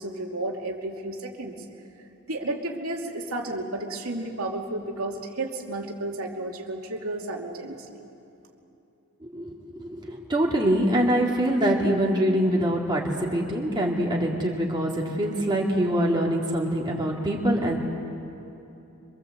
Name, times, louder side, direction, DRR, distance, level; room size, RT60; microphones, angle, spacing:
voice 1, 0.0-1.6 2.3-8.0, right 2 dB, 85° right, 1 dB, 2.7 m, -32 dB
voice 2, 9.2-17.8, right 1 dB, 20° right, -2 dB, 2.6 m, -24 dB
26.0 x 24.0 x 8.0 m, 2.9 s
head